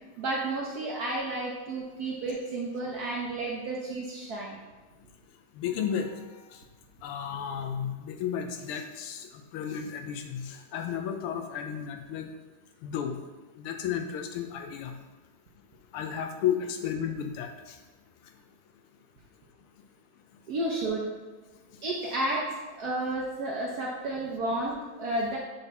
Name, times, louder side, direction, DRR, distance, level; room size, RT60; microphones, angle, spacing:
voice 1, 0.2-4.6 20.5-21.1 21.8-22.4 22.8-25.4, right 2 dB, 70° right, -2 dB, 0.9 m, -31 dB
voice 2, 5.6-6.1 7.0-9.3 9.5-12.3 12.8-13.2 13.5-14.9 15.9-17.5, left 8 dB, 90° left, 5 dB, 1.5 m, -33 dB
6.8 x 4.1 x 3.5 m, 1.3 s
omnidirectional pair, 2.4 m